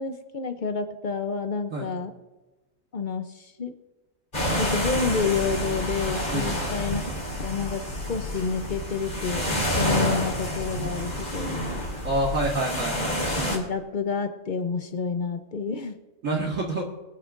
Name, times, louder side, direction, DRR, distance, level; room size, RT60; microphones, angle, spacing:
voice 1, 0.0-2.1 2.9-3.7 4.6-7.0 7.4-7.8 8.1-11.6 13.5-15.9, left 5 dB, 75° left, 8 dB, 0.4 m, -29 dB
sound 1, 4.3-13.6, equal, 30° left, 3.3 m, -28 dB
voice 2, 12.0-13.2 16.2-16.9, right 2 dB, 50° right, -2 dB, 1.8 m, -27 dB
23.5 x 9.7 x 2.5 m, 1.1 s
omnidirectional pair, 1.8 m